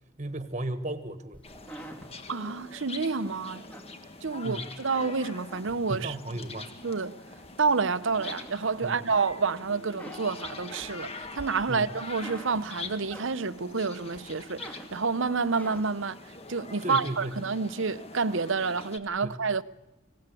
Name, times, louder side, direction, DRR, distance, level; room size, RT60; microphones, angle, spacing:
voice 1, 0.2-1.4 4.4-4.7 5.9-6.7 8.8-9.0 11.7-11.9 16.8-17.4 19.2-19.4, right 1 dB, 35° right, 1.6 m, -34 dB
sound 1, 1.3-4.8 5.2-6.3 6.8-7.8 8.1-9.3 9.7-13.7 14.1-16.1, right 1 dB, 5° left, 1.9 m, -47 dB
sound 2, 1.4-19.0, left 3 dB, 30° left, 1.5 m, -44 dB
voice 2, 2.3-3.6 4.2-6.2 6.8-7.1 7.6-16.2 16.5-19.6, right 4 dB, 65° right, 0.8 m, -29 dB
24.5 x 17.5 x 8.4 m
head